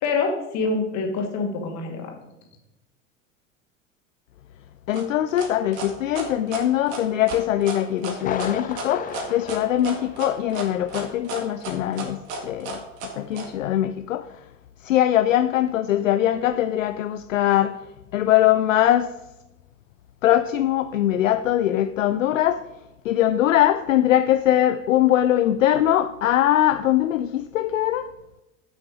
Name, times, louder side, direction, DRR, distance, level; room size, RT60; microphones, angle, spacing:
voice 1, 0.0-2.1, left 4 dB, 40° left, 2.2 m, -25 dB
voice 2, 4.9-12.8 13.1-14.3 14.8-17.8 18.1-19.1 20.2-22.6 23.0-28.1, left 12 dB, 70° left, 0.5 m, -21 dB
sound 1, 4.9-13.5, right 3 dB, 55° right, 1.9 m, -33 dB
Thunder, 8.2-10.7 11.0-11.1 11.7-11.8, left 8 dB, 20° left, 0.6 m, -34 dB
10.5 x 5.9 x 5.0 m
figure-of-eight pair, 75°, 40 cm